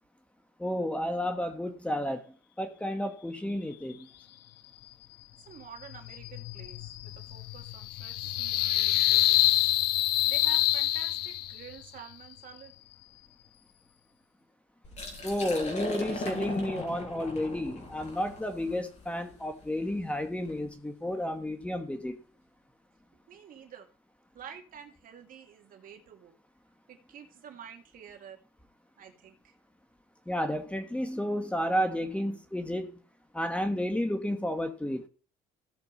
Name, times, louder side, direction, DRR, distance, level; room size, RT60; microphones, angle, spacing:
voice 1, 0.6-4.1 15.2-22.2 30.3-33.0 33.3-35.1, left 1 dB, 5° left, 1.5 m, -32 dB
voice 2, 5.5-9.5 10.3-12.7 23.3-23.9 24.3-26.3 26.9-28.4 29.0-29.5, right 8 dB, 55° right, 2.6 m, -48 dB
sound 1, 5.8-11.7, left 15 dB, 75° left, 0.6 m, -27 dB
Liquid, 14.8-20.6, left 2 dB, 45° left, 5.8 m, -39 dB
15.5 x 6.8 x 4.2 m
cardioid pair, 110°, 17 cm